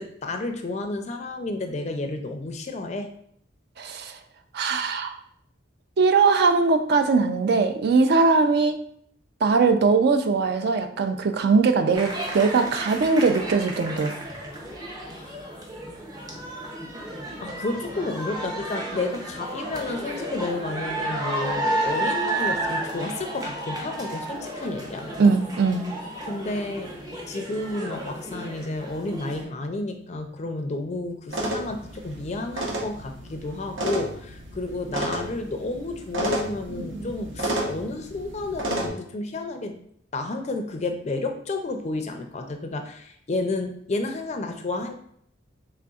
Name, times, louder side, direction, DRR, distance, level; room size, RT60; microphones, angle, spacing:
voice 1, 0.0-3.1 15.1-15.7 17.4-25.3 26.2-27.0 27.3-39.8 40.1-44.9, left 2 dB, 35° left, 6 dB, 0.4 m, -31 dB
voice 2, 3.8-4.2 4.5-5.2 6.0-8.8 9.4-14.1 25.2-25.8, right 4 dB, 55° right, 8 dB, 0.4 m, -20 dB
sound 1, 11.9-29.4, right 1 dB, 20° right, 0.6 m, -32 dB
sound 2, 31.3-38.9, right 1 dB, 80° right, 0.9 m, -31 dB
3.8 x 3.3 x 2.3 m, 0.66 s
head